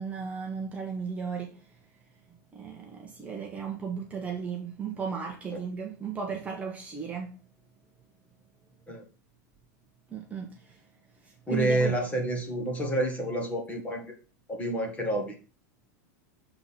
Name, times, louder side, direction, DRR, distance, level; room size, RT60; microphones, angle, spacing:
voice 1, 0.0-1.6 2.5-7.3 10.1-10.5 11.5-11.9, right 6 dB, 15° right, 1.1 m, -35 dB
voice 2, 11.5-14.1 14.5-15.4, right 1 dB, 15° left, 1.5 m, -28 dB
6.9 x 3.8 x 5.7 m
supercardioid pair, 155°, 10 cm